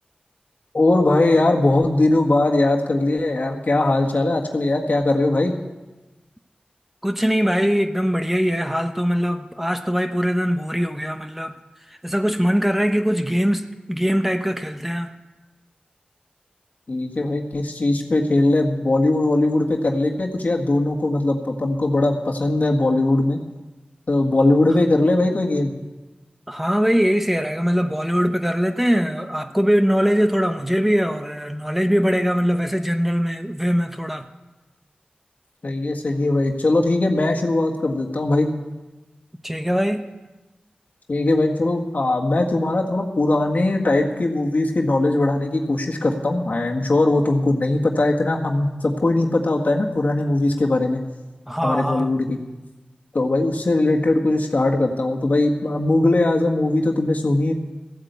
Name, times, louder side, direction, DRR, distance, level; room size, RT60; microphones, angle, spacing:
voice 1, 0.7-5.5 16.9-23.4 24.1-25.7 35.6-38.5 41.1-51.0 51.6-52.4 53.1-57.5, left 2 dB, 60° left, 1 dB, 1.7 m, -20 dB
voice 2, 7.0-11.5 12.0-15.1 26.5-34.3 39.4-40.0 51.5-52.2, equal, 5° right, 7 dB, 0.9 m, -21 dB
15.0 x 8.7 x 8.2 m, 1.2 s
wide cardioid pair, 55°, 3 cm